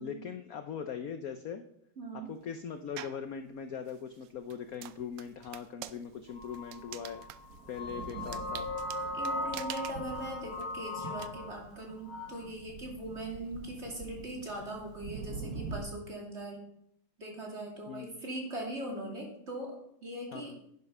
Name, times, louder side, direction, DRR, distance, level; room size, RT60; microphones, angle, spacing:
voice 1, 0.0-1.6 2.3-7.2 7.7-8.7 17.9-18.2 20.3-20.6, left 7 dB, 65° left, 9 dB, 0.8 m, -40 dB
voice 2, 2.0-2.4 9.1-16.6 17.2-20.6, right 1 dB, 30° right, 0 dB, 3.0 m, -41 dB
sound 1, 3.0-3.3 3.8-11.3, right 12 dB, 70° right, 1.2 m, -47 dB
sound 2, 6.3-11.5 12.1-12.5, left 2 dB, 20° left, 2.1 m, -38 dB
Thunder, 6.3-15.8, right 4 dB, 50° right, 1.4 m, -46 dB
11.0 x 10.0 x 5.4 m, 0.75 s
omnidirectional pair, 2.3 m